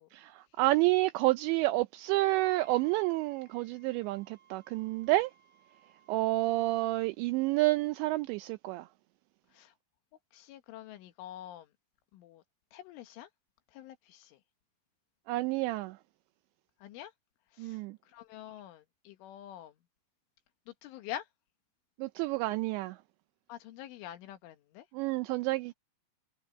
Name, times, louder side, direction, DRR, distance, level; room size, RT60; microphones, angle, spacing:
voice 1, 0.1-5.3 6.1-8.9 15.3-16.0 17.6-18.0 22.0-23.0 24.9-25.7, right 19 dB, 85° right, 2.6 m, -29 dB
Wind instrument woodwind instrument, 2.1-7.1, right 7 dB, 45° right, 6.7 m, -60 dB
voice 2, 10.3-11.7 12.1-12.4 12.7-13.3 13.7-14.4 16.8-17.1 17.5-17.8 18.1-19.7 20.7-21.3 23.5-24.9, left 12 dB, 80° left, 3.9 m, -46 dB
omnidirectional pair, 5.6 m